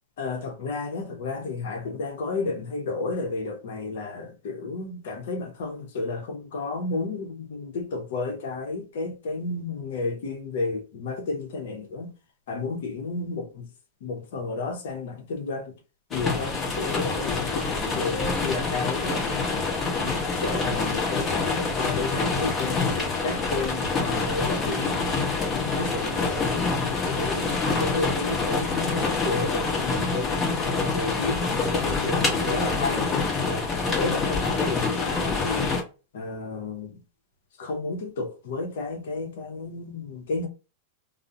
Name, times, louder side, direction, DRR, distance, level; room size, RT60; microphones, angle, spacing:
voice 1, 0.2-12.1 12.5-13.7 14.0-15.8 16.1-19.3 20.0-25.0 25.5-30.3 30.7-35.7 36.1-37.0 37.6-40.5, left 3 dB, 70° left, 0.8 m, -32 dB
Rain on Window, 16.1-35.8, left 4 dB, 25° left, 0.9 m, -26 dB
2.3 x 2.1 x 2.6 m
hypercardioid pair, 110°, 0 cm